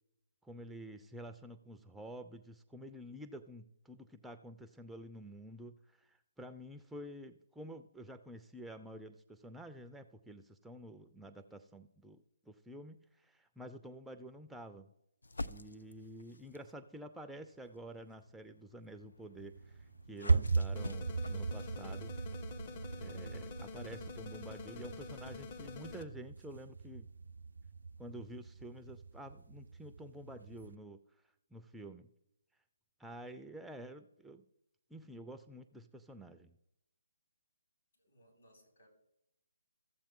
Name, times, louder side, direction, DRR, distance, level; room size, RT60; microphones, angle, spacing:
voice 1, 0.4-14.9 15.5-22.1 23.0-27.1 28.0-31.0 31.5-32.1 33.0-34.4 34.9-36.6, right 1 dB, ahead, 6 dB, 0.4 m, -50 dB
sound 1, 15.2-16.8 17.5-23.7, left 2 dB, 90° left, 0.5 m, -51 dB
sound 2, 19.4-30.7, right 4 dB, 80° right, 0.3 m, -38 dB
sound 3, 20.7-26.0, left 5 dB, 35° left, 0.6 m, -47 dB
voice 2, 37.9-38.9, equal, 65° left, 0 dB, 4.4 m, -66 dB
14.5 x 7.3 x 3.6 m, 0.83 s
hypercardioid pair, 150°, 0 cm